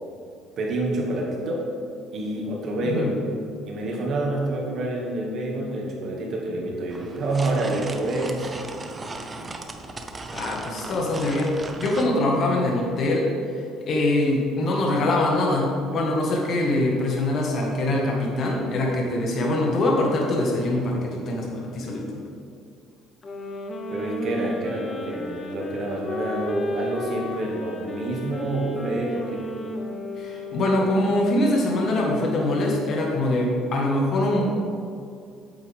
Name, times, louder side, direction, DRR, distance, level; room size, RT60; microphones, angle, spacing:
voice 1, 0.6-1.7 2.1-3.2 3.6-8.5 23.9-29.4, right 2 dB, 55° right, -1 dB, 2.1 m, -28 dB
sound 1, 6.9-12.1, right 2 dB, 25° right, 0.8 m, -37 dB
voice 2, 10.3-22.2 30.2-34.6, left 1 dB, 50° left, -1 dB, 1.7 m, -23 dB
sound 2, 23.2-31.2, left 1 dB, 35° left, 1.0 m, -33 dB
8.3 x 8.2 x 3.6 m, 2.4 s
cardioid pair, 100°, 0 cm